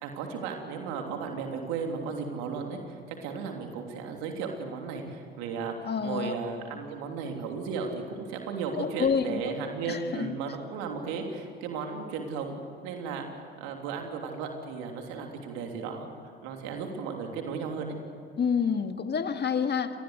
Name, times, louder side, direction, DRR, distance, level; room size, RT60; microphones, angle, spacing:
voice 1, 0.0-13.3 13.6-16.1 16.4-18.0, right 5 dB, 65° right, 3 dB, 3.2 m, -35 dB
voice 2, 5.9-6.3 8.7-9.4 9.9-10.3 18.4-19.9, left 6 dB, 35° left, 8 dB, 2.0 m, -28 dB
27.0 x 20.0 x 8.2 m, 2.5 s
hypercardioid pair, 60°, 29 cm